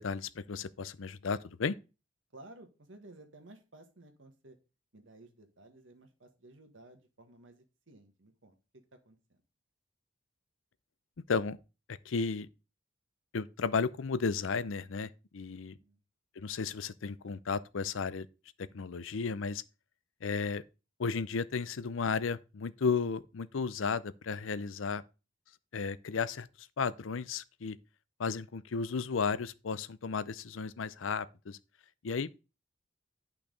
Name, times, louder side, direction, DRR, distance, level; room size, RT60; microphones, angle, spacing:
voice 1, 0.0-1.7 11.3-11.6 11.9-12.5 13.3-15.8 16.4-18.3 18.6-19.6 20.2-20.6 21.0-25.0 25.7-27.8 28.2-31.6 32.0-32.4, left 5 dB, 85° left, 0.6 m, -34 dB
voice 2, 2.3-4.6 4.9-8.6 8.9-9.4 15.8-16.0, right 2 dB, 75° right, 1.7 m, -55 dB
10.5 x 5.8 x 3.9 m
head